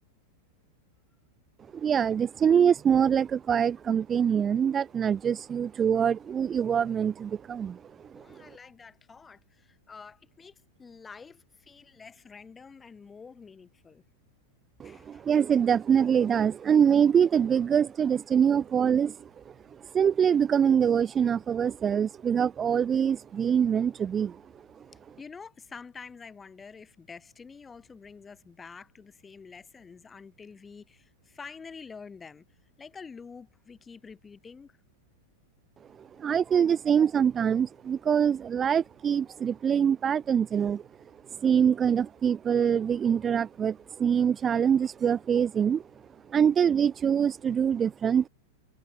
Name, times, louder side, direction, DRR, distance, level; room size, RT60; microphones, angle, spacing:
voice 1, 1.7-8.4 14.8-24.4 36.0-40.8 41.3-45.8 46.3-48.3, right 8 dB, 20° right, 0.6 m, -24 dB
voice 2, 8.1-14.0 14.8-15.3 24.9-32.4 32.8-34.8, left 5 dB, 15° left, 2.8 m, -48 dB
figure-of-eight pair, 90°, 0 cm